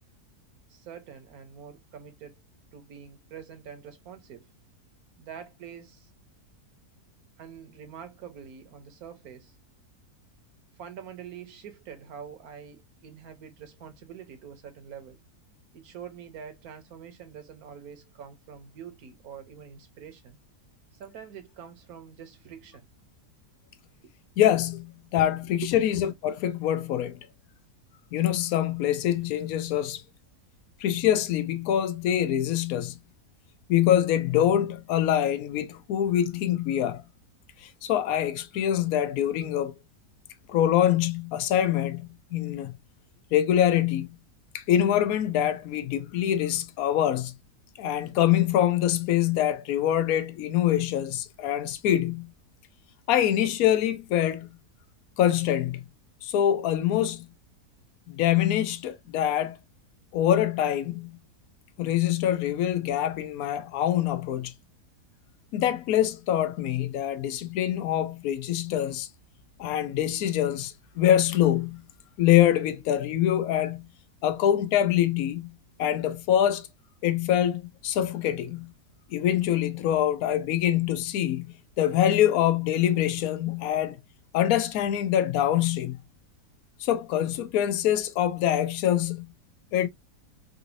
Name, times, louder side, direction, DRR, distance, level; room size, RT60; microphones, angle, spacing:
voice 1, 0.7-2.4 2.7-4.5 5.2-6.1 7.4-9.6 10.8-15.2 15.7-20.4 21.0-22.9 24.0-24.1 25.4-25.7, right 8 dB, 70° right, 1.4 m, -45 dB
voice 2, 24.4-27.2 28.1-30.0 30.8-33.0 33.7-37.0 37.6-39.7 40.5-42.7 43.3-44.1 44.5-47.3 47.8-52.3 53.1-54.5 55.2-55.8 56.2-57.3 58.1-59.6 60.1-61.2 61.8-64.5 65.5-69.1 69.6-71.8 72.2-73.9 74.2-75.5 75.8-76.7 77.0-78.7 79.1-84.0 84.3-86.0 86.8-89.3 89.7-89.9, left 11 dB, 70° left, 1.0 m, -25 dB
4.0 x 2.6 x 2.6 m
omnidirectional pair, 1.7 m